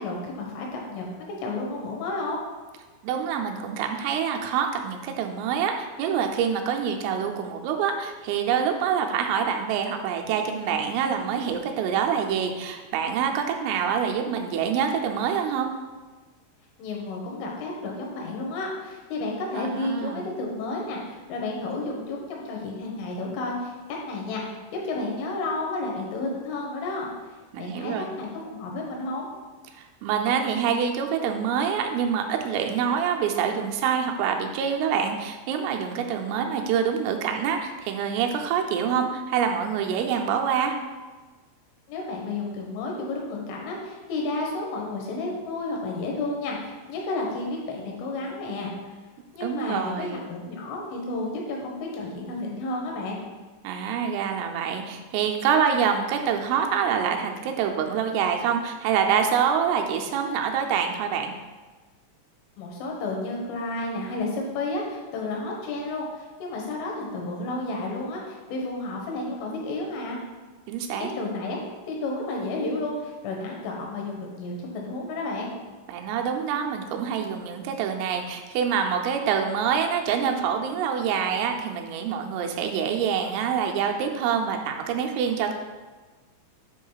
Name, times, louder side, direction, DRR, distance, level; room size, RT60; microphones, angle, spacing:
voice 1, 0.0-2.4 16.8-27.1 27.6-29.3 41.9-48.9 49.3-53.2 62.6-70.2 71.0-71.6 71.9-75.5, left 2 dB, 80° left, -1 dB, 3.8 m, -31 dB
voice 2, 3.0-15.7 19.6-20.3 27.5-28.1 30.0-40.8 49.4-50.3 53.6-61.3 70.7-71.1 75.9-85.6, right 7 dB, 85° right, 3 dB, 3.3 m, -26 dB
8.7 x 3.1 x 5.6 m, 1.3 s
omnidirectional pair, 5.7 m